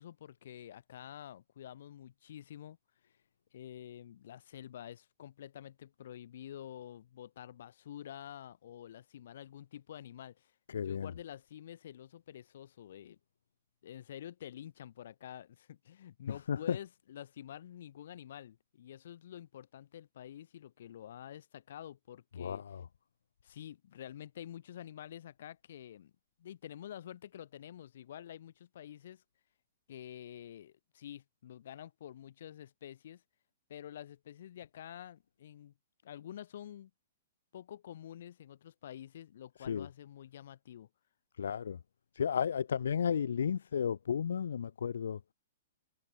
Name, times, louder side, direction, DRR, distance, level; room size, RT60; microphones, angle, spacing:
voice 1, 0.0-2.8 3.5-10.5 10.8-13.2 13.8-22.6 23.4-26.1 26.4-29.2 29.9-33.2 33.7-35.7 36.0-36.9 37.5-40.9, left 10 dB, 65° left, 6.6 m, -48 dB
voice 2, 10.7-11.1 16.5-16.8 22.4-22.8 39.7-39.9 41.4-41.8 42.2-45.2, left 7 dB, 80° left, 0.9 m, -33 dB
hypercardioid pair, 145°, 0 cm